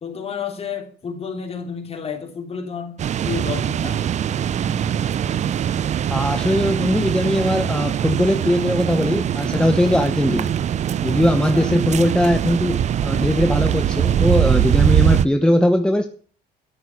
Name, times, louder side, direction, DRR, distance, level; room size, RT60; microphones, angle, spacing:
voice 1, 0.0-4.0 11.3-11.7, left 6 dB, 35° left, 5 dB, 3.1 m, -31 dB
sound 1, 3.0-15.3, right 9 dB, 45° right, 0.5 m, -22 dB
voice 2, 6.1-10.5 11.0-12.8 13.0-16.1, left 1 dB, 5° left, 7 dB, 0.8 m, -19 dB
13.0 x 6.1 x 8.7 m, 0.44 s
cardioid pair, 110°, 17 cm